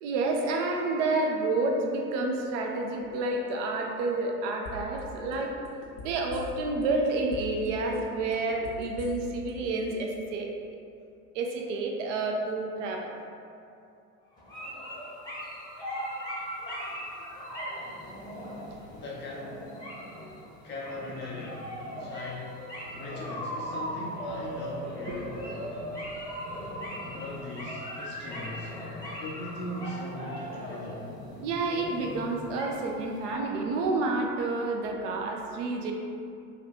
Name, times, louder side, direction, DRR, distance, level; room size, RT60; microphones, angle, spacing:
voice 1, 0.0-5.5 6.0-10.5 11.3-13.1 20.1-20.5 31.4-35.9, right 3 dB, 50° right, 1 dB, 0.5 m, -29 dB
sound 1, 4.7-5.0 5.3-6.8 7.2-7.7 8.0-9.5 9.8-9.9, left 2 dB, 75° left, 0.8 m, -42 dB
sound 2, 14.4-33.4, equal, 10° left, 0.8 m, -39 dB
voice 2, 18.9-19.9 20.6-25.8 27.0-28.8 29.2-31.1, left 1 dB, 25° left, -5 dB, 0.4 m, -40 dB
3.6 x 2.2 x 3.4 m, 2.6 s
figure-of-eight pair, 75°, 46 cm